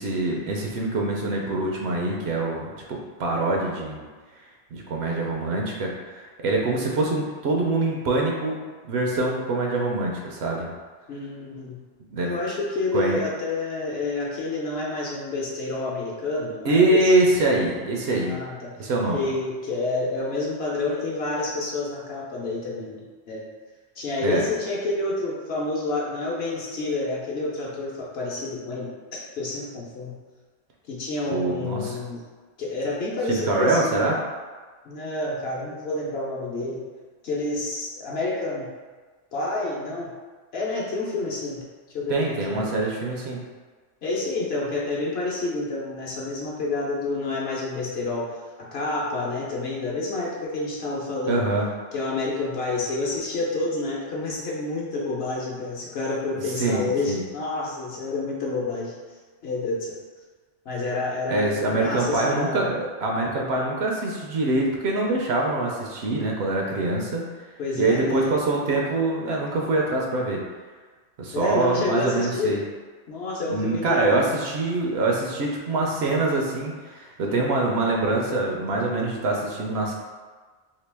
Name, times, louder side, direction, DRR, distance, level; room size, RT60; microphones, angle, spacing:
voice 1, 0.0-4.1 4.7-10.7 12.1-12.3 12.9-13.2 16.6-18.4 18.8-19.2 24.2-24.4 31.3-32.0 33.3-34.2 42.1-43.4 51.3-51.7 56.5-57.2 61.3-67.4 67.8-70.4 71.2-72.6 73.5-79.9, right 2 dB, 70° right, -1 dB, 0.8 m, -24 dB
voice 2, 11.1-11.8 12.2-17.1 18.2-18.8 19.1-23.4 24.0-28.9 29.4-30.2 30.9-32.2 32.6-34.2 34.8-36.8 37.2-38.7 39.3-40.1 40.5-41.6 41.9-42.7 44.0-51.4 51.9-58.9 59.4-59.9 60.7-62.7 67.6-68.3 71.3-72.6 73.1-74.2 77.3-77.6, left 2 dB, 65° left, -4 dB, 0.8 m, -29 dB
2.9 x 2.7 x 3.3 m, 1.4 s
omnidirectional pair, 1.2 m